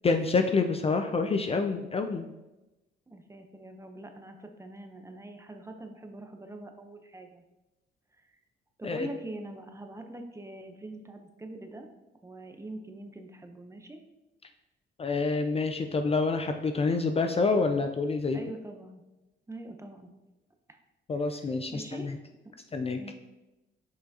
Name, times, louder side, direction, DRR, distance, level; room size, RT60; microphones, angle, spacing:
voice 1, 0.0-2.3 8.8-9.1 15.0-18.4 21.1-22.2 22.7-23.0, left 4 dB, 30° left, 6 dB, 0.4 m, -27 dB
voice 2, 3.1-7.4 8.2-8.3 8.8-11.9 12.2-14.0 18.3-19.0 19.5-20.1 20.7-20.8 21.2-22.1 23.0-23.1, right 2 dB, 15° right, 5 dB, 0.7 m, -43 dB
6.4 x 5.6 x 2.8 m, 1.0 s
cardioid pair, 90°, 20 cm